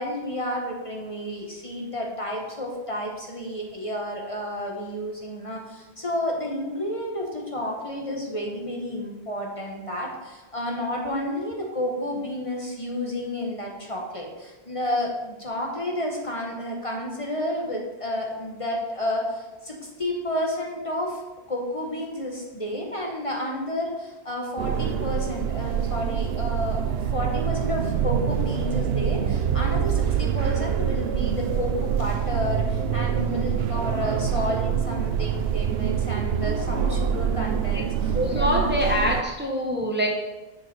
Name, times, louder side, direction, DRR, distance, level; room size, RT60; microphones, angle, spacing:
voice 1, 0.0-21.2 21.5-26.8 27.1-38.6, left 1 dB, 35° left, -1 dB, 1.1 m, -31 dB
sound 1, 24.6-39.2, right 8 dB, 75° right, 0.8 m, -25 dB
voice 2, 38.1-40.1, equal, 10° right, 0 dB, 0.8 m, -24 dB
7.1 x 5.2 x 4.6 m, 1.1 s
omnidirectional pair, 1.0 m